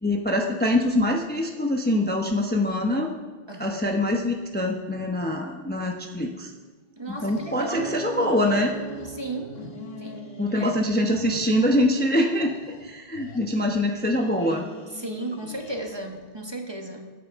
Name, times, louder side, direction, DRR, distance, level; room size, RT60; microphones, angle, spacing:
voice 1, 0.0-3.1 3.6-6.5 7.1-8.8 10.4-12.5 12.8-14.7, left 1 dB, 10° left, 2 dB, 0.8 m, -24 dB
voice 2, 3.5-3.8 7.0-8.0 9.1-9.5 10.0-10.7 14.9-17.1, right 2 dB, 25° right, 3 dB, 1.2 m, -35 dB
sound 1, 7.1-9.1 9.4-10.9 11.1-12.9 13.1-16.3, left 4 dB, 70° left, 1.5 m, -44 dB
Acoustic guitar, 7.8-12.1 12.7-13.0, right 5 dB, 60° right, 1.6 m, -40 dB
22.0 x 9.2 x 3.6 m, 1.4 s
omnidirectional pair, 1.1 m